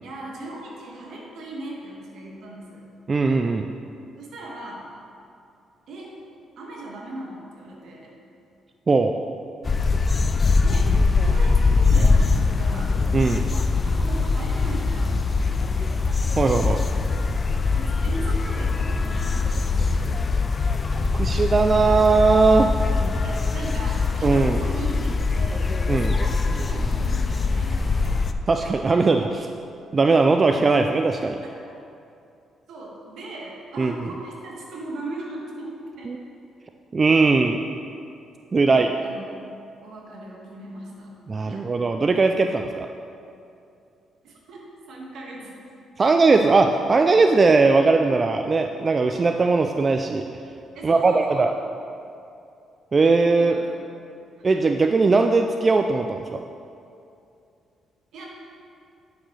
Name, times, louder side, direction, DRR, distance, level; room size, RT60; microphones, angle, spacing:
voice 1, 0.0-2.8 4.2-4.9 5.9-6.1 6.6-8.1 10.6-13.0 13.9-16.0 17.7-20.2 23.2-25.6 26.0-26.4 26.6-28.3 32.7-36.1 38.7-39.2 39.8-41.1 41.5-41.6 44.2-44.6 44.9-45.6 50.7-51.5 53.4-53.8 58.1-58.3, right 2 dB, 75° right, -3 dB, 1.7 m, -38 dB
voice 2, 3.1-3.7 8.9-9.2 13.1-13.5 16.4-16.8 21.1-22.7 23.0-23.1 24.2-24.6 25.9-26.1 28.5-29.5 29.9-31.4 33.8-33.9 36.9-37.6 38.5-38.9 41.3-42.9 46.0-50.2 50.8-51.5 52.9-53.5 54.4-56.4, right 3 dB, 35° right, 5 dB, 0.3 m, -19 dB
sound 1, 9.6-28.3, left 4 dB, 35° left, 0.4 m, -22 dB
10.0 x 6.1 x 3.3 m, 2.6 s
cardioid pair, 90°, 0 cm